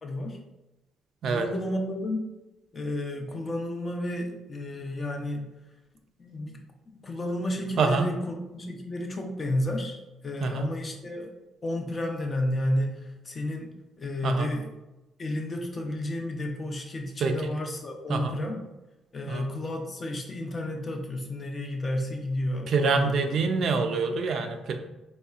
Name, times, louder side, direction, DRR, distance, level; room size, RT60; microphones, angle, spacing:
voice 1, 0.0-0.4 1.2-2.2 2.7-5.5 6.2-6.6 6.9-11.3 11.6-14.7 15.2-18.6 19.1-23.6, left 1 dB, 30° left, 2 dB, 0.6 m, -31 dB
voice 2, 7.8-8.1 10.4-10.7 14.2-14.5 17.2-17.5 18.1-18.4 19.3-19.5 22.7-24.8, right 4 dB, 60° right, 5 dB, 0.4 m, -26 dB
4.1 x 3.2 x 2.3 m, 0.99 s
cardioid pair, 115°, 0 cm